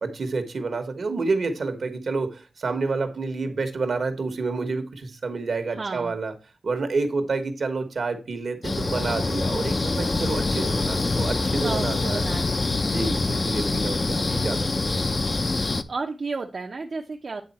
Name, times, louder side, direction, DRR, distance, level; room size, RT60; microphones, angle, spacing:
voice 1, 0.0-6.3 6.6-12.3 12.8-15.2, right 3 dB, 70° right, 1.2 m, -29 dB
voice 2, 5.7-6.1 11.6-12.8 15.9-17.4, right 4 dB, 55° right, 0.7 m, -32 dB
sound 1, 8.6-15.8, left 3 dB, 40° left, 0.5 m, -25 dB
9.2 x 3.8 x 4.2 m
wide cardioid pair, 85°, 0 cm